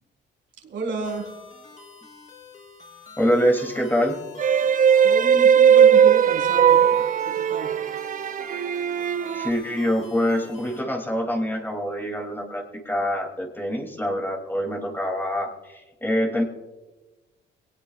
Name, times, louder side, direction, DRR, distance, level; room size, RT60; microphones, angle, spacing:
voice 1, 0.6-1.3 5.0-6.9 7.2-7.8, right 3 dB, 70° right, 0 dB, 3.8 m, -31 dB
sound 1, 1.0-10.8, left 4 dB, 35° left, 5.6 m, -47 dB
voice 2, 3.2-4.2 9.3-16.4, equal, 10° left, 2 dB, 2.6 m, -25 dB
sound 2, 4.4-9.5, right 8 dB, 40° right, 0.4 m, -18 dB
22.5 x 18.5 x 2.4 m, 1.2 s
cardioid pair, 90°, 20 cm